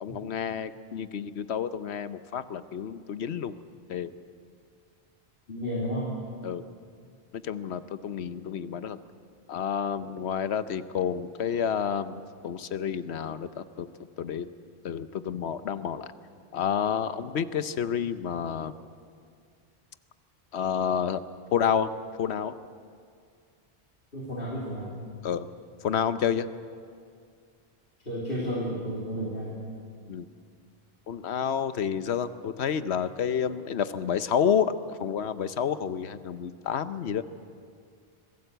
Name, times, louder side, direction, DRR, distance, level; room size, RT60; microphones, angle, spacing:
voice 1, 0.0-3.5 3.9-4.1 6.4-6.6 7.4-9.0 9.5-13.9 14.2-14.5 14.8-16.1 16.5-18.7 20.5-21.2 21.5-21.9 22.2-22.6 25.2-25.5 25.8-26.5 30.1-30.3 31.1-37.2, left 8 dB, 80° left, 13 dB, 1.1 m, -29 dB
voice 2, 5.5-6.1 24.1-24.9 28.1-29.7, equal, 60° left, -5 dB, 3.0 m, -32 dB
25.5 x 17.5 x 7.9 m, 2.2 s
omnidirectional pair, 1.1 m